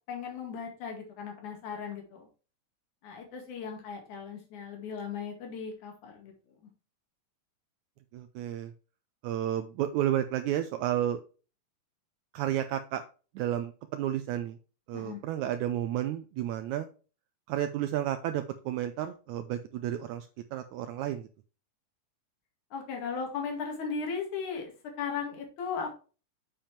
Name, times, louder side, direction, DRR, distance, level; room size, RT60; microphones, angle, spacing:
voice 1, 0.1-2.3 3.0-6.3 14.9-15.2 22.7-25.9, left 5 dB, 70° left, 2 dB, 3.5 m, -37 dB
voice 2, 8.1-8.7 9.2-11.2 12.3-13.0 13.4-14.6 14.9-16.9 17.5-21.3, right 11 dB, 75° right, 9 dB, 1.9 m, -31 dB
7.3 x 7.3 x 3.3 m, 0.35 s
omnidirectional pair, 3.6 m